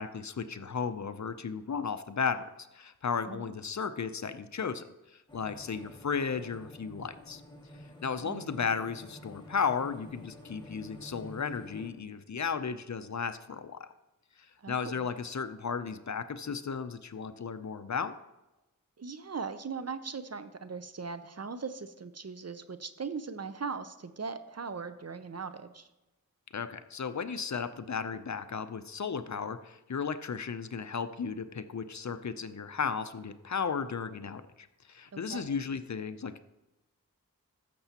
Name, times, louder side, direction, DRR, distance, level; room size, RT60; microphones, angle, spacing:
voice 1, 0.0-2.5 2.7-4.9 5.3-7.4 8.0-13.9 14.7-18.1 26.5-36.4, left 6 dB, 55° left, 11 dB, 0.6 m, -34 dB
sound 1, 5.3-11.9, left 1 dB, 15° left, 2.0 m, -50 dB
voice 2, 14.6-15.1 19.0-25.9 35.1-35.6, right 5 dB, 45° right, 11 dB, 0.6 m, -39 dB
13.5 x 6.8 x 2.9 m, 1.0 s
wide cardioid pair, 45°, 35 cm